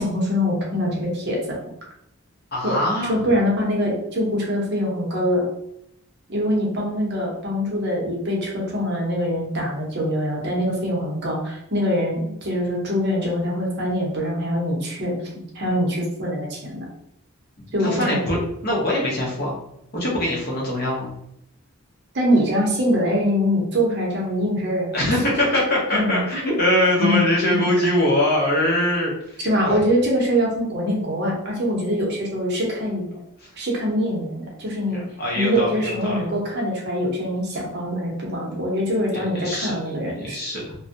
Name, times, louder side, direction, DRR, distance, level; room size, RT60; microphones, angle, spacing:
voice 1, 0.0-1.6 2.6-2.7 3.1-5.5 6.3-16.9 17.7-18.2 22.1-25.2 25.9-26.5 26.9-27.3 29.4-33.1 33.6-35.0 35.4-40.4, equal, 50° right, -3 dB, 0.7 m, -23 dB
voice 2, 2.5-3.1 17.8-19.6 19.9-21.1 24.9-29.8 33.4-33.5 35.2-36.2 39.1-39.7 40.1-40.8, left 1 dB, 45° left, -3 dB, 0.8 m, -22 dB
2.5 x 2.2 x 2.6 m, 0.76 s
head